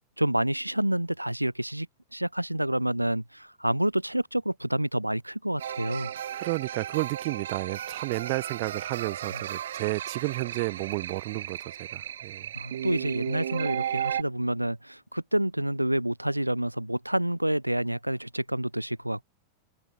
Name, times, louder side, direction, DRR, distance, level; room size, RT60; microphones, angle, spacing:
voice 1, 0.2-1.9 2.1-6.1 12.6-19.2, right 1 dB, 90° right, 0.7 m, -28 dB
sound 1, 5.6-14.2, right 10 dB, 65° right, 0.8 m, -35 dB
voice 2, 6.3-12.5, right 29 dB, 45° right, 1.0 m, -32 dB
figure-of-eight pair, 90°, 0 cm